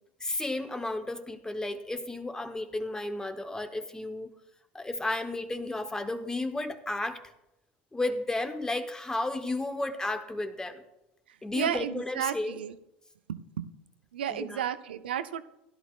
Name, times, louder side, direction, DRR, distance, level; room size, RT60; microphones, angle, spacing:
voice 1, 0.2-4.3 4.7-7.2 7.9-10.8 11.4-12.6 14.3-14.7, left 2 dB, 10° left, 8 dB, 1.0 m, -33 dB
voice 2, 11.5-12.8 13.3-13.7 14.1-15.4, right 9 dB, 85° right, 11 dB, 0.5 m, -32 dB
16.5 x 11.0 x 2.4 m, 0.92 s
hypercardioid pair, 85°, 5 cm